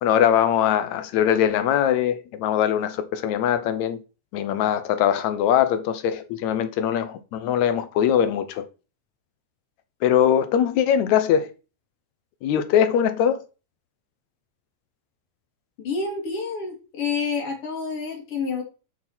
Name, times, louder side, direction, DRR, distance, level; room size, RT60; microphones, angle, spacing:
voice 1, 0.0-4.0 4.3-8.7 10.0-11.5 12.4-13.5, left 9 dB, 75° left, 1.7 m, -21 dB
voice 2, 15.8-18.6, left 5 dB, 45° left, 3.3 m, -28 dB
7.3 x 6.3 x 4.3 m
omnidirectional pair, 3.8 m